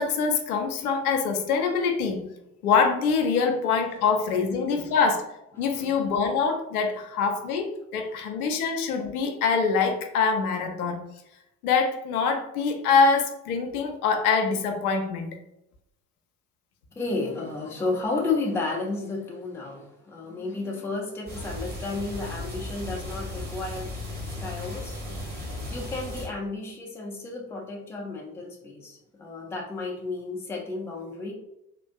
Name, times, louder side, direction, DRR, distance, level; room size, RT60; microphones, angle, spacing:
voice 1, 0.0-2.3 2.6-5.2 5.6-11.1 11.6-15.4, left 5 dB, 70° left, 4 dB, 0.6 m, -24 dB
voice 2, 5.5-5.9 17.0-24.1 24.4-25.0 25.7-31.3, left 3 dB, 5° left, -1 dB, 0.5 m, -32 dB
sound 1, 21.3-26.3, left 1 dB, 20° right, 1.2 m, -36 dB
3.5 x 2.5 x 2.3 m, 0.85 s
figure-of-eight pair, 60°, 47 cm